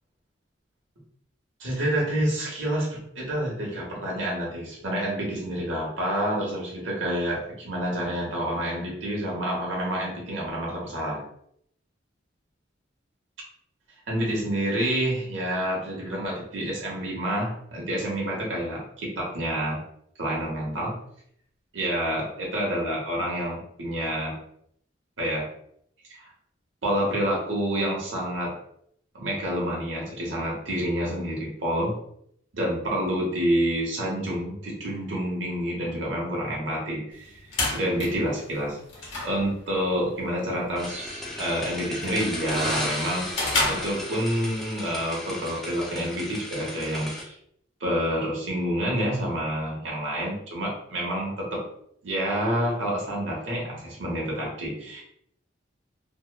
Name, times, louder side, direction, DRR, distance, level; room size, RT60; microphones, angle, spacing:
voice 1, 1.6-11.2 14.1-19.8 20.2-20.9 21.7-24.3 25.2-25.5 26.1-26.3 26.8-28.5 29.1-31.9 32.5-37.3 37.7-38.8 39.2-43.2 43.7-47.3 47.8-51.6 52.0-55.0, equal, 75° right, -3 dB, 0.8 m, -28 dB
sound 1, 37.1-44.6, left 2 dB, 75° left, 0.9 m, -33 dB
sound 2, 40.8-47.2, left 1 dB, ahead, 0.4 m, -34 dB
2.8 x 2.0 x 2.2 m, 0.70 s
head